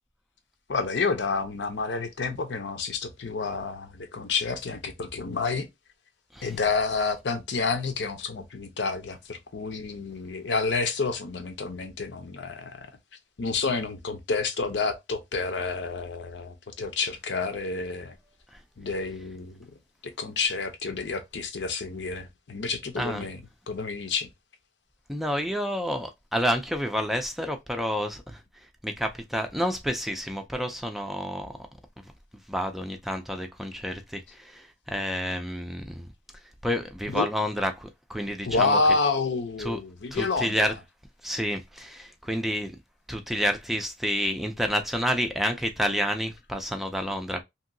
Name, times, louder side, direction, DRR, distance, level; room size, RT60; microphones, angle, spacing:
voice 1, 0.7-5.7 6.4-12.9 13.4-18.2 18.8-19.8 20.0-23.4 23.7-24.3 37.1-37.3 38.5-40.7, left 4 dB, 85° left, 0.7 m, -29 dB
voice 2, 25.1-28.4 28.8-31.5 32.5-34.6 34.9-36.1 36.6-38.8 39.6-39.8 40.1-40.7 41.2-42.7 43.1-47.4, equal, ahead, 0.3 m, -29 dB
2.9 x 2.7 x 2.6 m
head